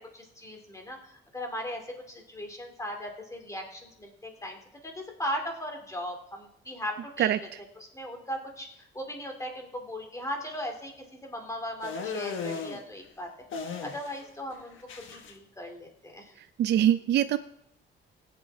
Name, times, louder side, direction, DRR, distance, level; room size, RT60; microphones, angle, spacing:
voice 1, 0.1-1.8 2.1-4.6 4.8-7.4 7.8-10.9 11.2-13.3 13.8-16.3, equal, 15° left, 3 dB, 2.5 m, -38 dB
voice 2, 7.2-7.6 16.6-17.4, right 11 dB, 55° right, 11 dB, 0.4 m, -24 dB
sound 1, 11.8-12.8 13.5-14.3 14.5-15.3, left 5 dB, 70° left, 1.5 m, -36 dB
20.0 x 8.6 x 3.5 m, 0.77 s
cardioid pair, 120°, 21 cm